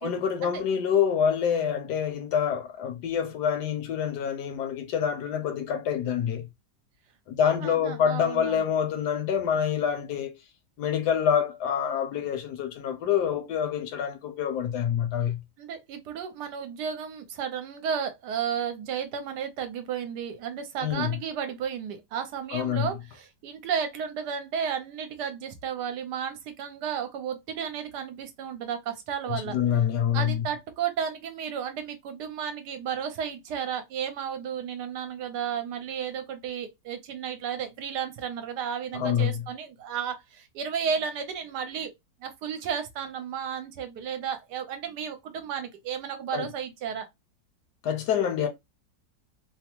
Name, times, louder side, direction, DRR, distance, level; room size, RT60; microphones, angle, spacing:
voice 1, 0.0-6.5 7.3-10.3 10.8-15.4 20.8-21.2 22.5-22.9 29.3-30.5 38.9-39.4 46.3-46.4 47.8-48.5, left 8 dB, 70° left, 1.1 m, -26 dB
voice 2, 7.4-8.6 15.6-29.6 30.1-41.9 42.2-47.1, right 7 dB, 70° right, 1.1 m, -33 dB
3.3 x 2.0 x 2.9 m
omnidirectional pair, 2.0 m